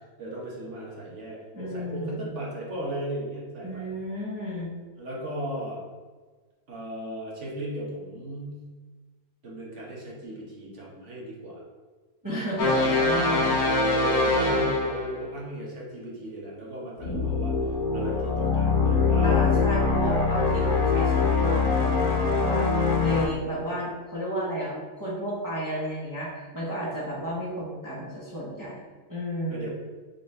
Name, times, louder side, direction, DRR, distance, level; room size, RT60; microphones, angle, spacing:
voice 1, 0.0-3.9 5.0-5.8 6.7-8.6 9.4-11.6 13.3-17.6 17.9-20.0 29.5-29.7, right 1 dB, 55° right, -3 dB, 1.3 m, -36 dB
voice 2, 1.5-2.3 3.6-4.7 12.2-13.5 19.2-28.8 29.1-29.7, right 1 dB, 15° right, -7 dB, 0.8 m, -32 dB
sound 1, 12.6-15.2 17.0-23.3, left 4 dB, 80° left, 1.3 m, -23 dB
4.2 x 3.9 x 3.2 m, 1.4 s
omnidirectional pair, 1.6 m